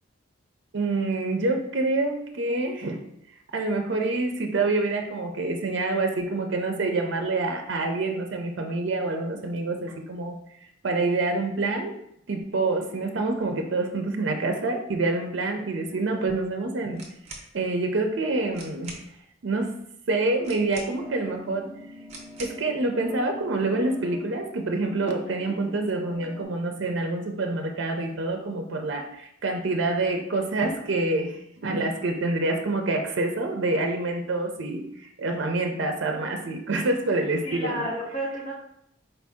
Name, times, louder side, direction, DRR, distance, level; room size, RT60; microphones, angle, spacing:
voice 1, 0.7-3.0 3.5-10.4 10.8-11.9 12.3-17.0 17.5-19.0 19.4-19.8 20.1-21.7 22.4-37.9, right 2 dB, 70° right, 4 dB, 0.5 m, -27 dB
voice 2, 15.9-16.3 37.4-38.6, equal, 45° left, -7 dB, 1.6 m, -32 dB
sound 1, 16.9-17.5 18.2-18.3 18.5-19.1 20.4-21.2 22.1-22.6, right 3 dB, 35° right, 0.7 m, -43 dB
sound 2, 21.0-26.4, left 1 dB, ahead, 1.2 m, -45 dB
4.4 x 2.6 x 3.5 m, 0.74 s
head